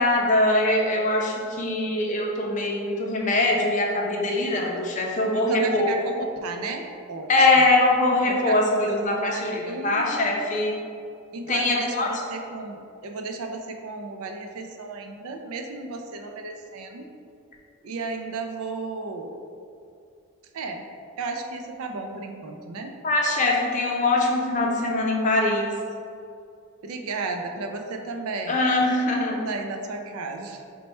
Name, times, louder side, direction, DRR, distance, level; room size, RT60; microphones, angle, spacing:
voice 1, 0.0-5.9 7.3-10.8 11.5-12.1 23.0-25.7 28.5-29.5, left 2 dB, 35° left, -1 dB, 0.4 m, -22 dB
voice 2, 5.3-7.5 8.3-10.4 11.3-17.1 17.8-19.3 20.5-20.9 21.2-23.0 26.8-28.6 29.4-30.6, right 3 dB, 75° right, 4 dB, 0.4 m, -34 dB
4.3 x 2.2 x 4.2 m, 2.5 s
head